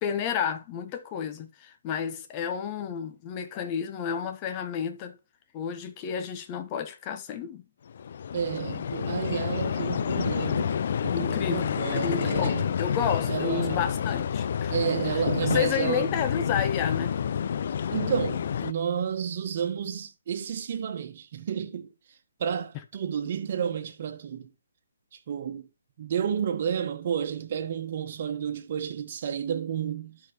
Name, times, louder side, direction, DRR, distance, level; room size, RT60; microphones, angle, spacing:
voice 1, 0.0-5.2 5.5-7.6 11.1-14.8 15.1-17.2, left 8 dB, 25° left, 1.1 m, -31 dB
sound 1, 7.9-18.7, left 8 dB, 55° left, 0.4 m, -29 dB
voice 2, 8.3-12.7 13.2-13.9 14.7-16.1 17.9-21.9 22.4-24.5 25.3-25.7 26.0-30.2, right 8 dB, 45° right, 1.3 m, -31 dB
12.0 x 5.1 x 3.0 m
hypercardioid pair, 150°, 0 cm